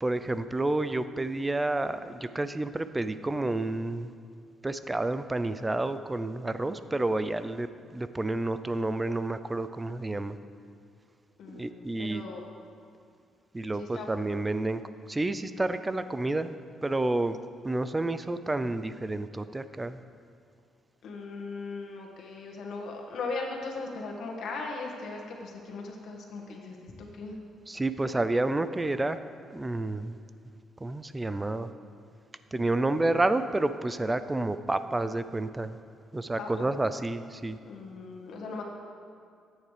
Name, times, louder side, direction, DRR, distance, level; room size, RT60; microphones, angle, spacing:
voice 1, 0.0-4.1 4.6-10.4 11.5-12.2 13.5-16.5 16.8-17.4 17.6-20.0 27.7-29.2 29.5-30.2 30.8-31.7 32.5-35.8 36.1-37.6, right 2 dB, 15° right, 12 dB, 0.5 m, -30 dB
voice 2, 11.4-12.4 13.8-14.1 21.0-27.4 36.4-36.7 37.6-38.6, left 3 dB, 70° left, 1 dB, 1.7 m, -38 dB
14.0 x 9.3 x 3.3 m, 2.4 s
cardioid pair, 90°, 0 cm